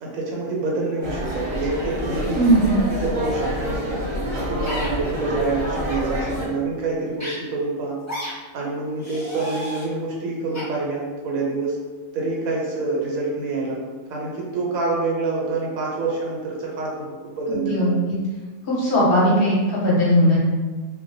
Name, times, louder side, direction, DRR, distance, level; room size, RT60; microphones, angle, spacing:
voice 1, 0.0-2.4 2.9-3.8 4.5-7.9 8.5-11.8 12.1-13.8 14.1-17.9, right 3 dB, 85° right, -3 dB, 1.0 m, -26 dB
sound 1, 1.0-6.5, equal, 55° right, 0.8 m, -28 dB
voice 2, 2.3-2.8 17.7-18.2 18.7-20.4, equal, 50° left, -6 dB, 0.8 m, -18 dB
sound 2, 4.7-4.9 5.8-6.0 7.2-7.3 8.1-8.3 9.0-9.9 10.5-10.6, equal, 20° left, 0.4 m, -32 dB
2.2 x 2.1 x 2.5 m, 1.4 s
omnidirectional pair, 1.4 m